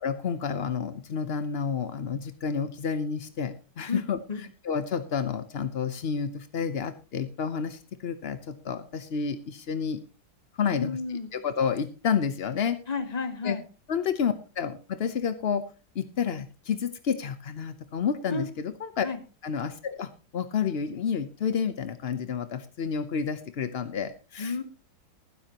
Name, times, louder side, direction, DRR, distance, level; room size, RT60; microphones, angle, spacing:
voice 1, 0.0-4.2 4.6-10.0 10.6-11.0 11.3-12.8 13.4-13.6 13.9-15.6 15.9-19.1 19.4-24.5, left 6 dB, 75° left, 11 dB, 0.5 m, -30 dB
voice 2, 3.9-4.4 10.7-11.3 12.9-13.6 18.3-18.5 19.0-19.2 24.4-24.6, left 4 dB, 25° left, 9 dB, 1.1 m, -32 dB
19.0 x 10.0 x 2.9 m, 0.33 s
omnidirectional pair, 2.1 m